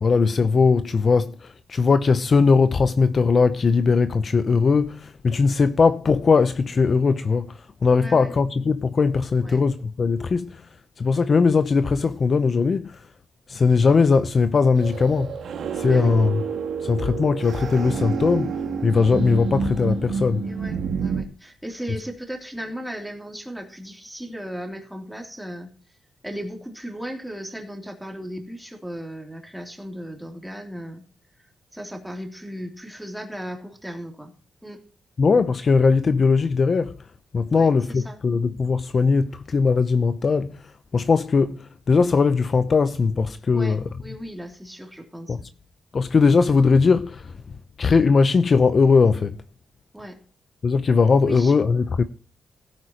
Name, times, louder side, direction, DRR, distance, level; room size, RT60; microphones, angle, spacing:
voice 1, 0.0-10.7 11.0-13.1 13.5-15.4 15.7-16.4 16.8-20.4 35.2-37.1 37.3-43.9 45.3-45.4 45.9-49.4 50.6-52.0, left 4 dB, 40° left, 0.6 m, -20 dB
voice 2, 7.9-8.3 9.4-9.6 15.8-16.1 20.4-25.7 26.2-31.0 31.7-34.3 34.6-34.8 37.5-37.7 38.0-38.2 43.5-45.5 49.9-50.2 51.2-51.5, equal, 5° right, 3.1 m, -36 dB
sound 1, 14.8-21.2, right 6 dB, 75° right, 1.8 m, -28 dB
16.5 x 9.4 x 2.9 m
cardioid pair, 115°, 0 cm